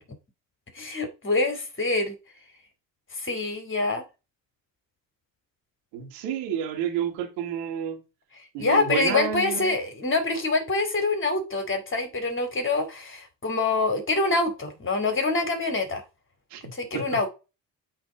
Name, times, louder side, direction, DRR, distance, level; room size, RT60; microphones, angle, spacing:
voice 1, 0.7-2.1 3.1-4.0 8.6-16.0 16.7-17.3, left 3 dB, 30° left, 2.7 m, -25 dB
voice 2, 5.9-8.0 8.5-9.8 16.5-16.6 16.9-17.1, right 8 dB, 85° right, 2.4 m, -30 dB
7.9 x 3.5 x 5.0 m
supercardioid pair, 65°, 41 cm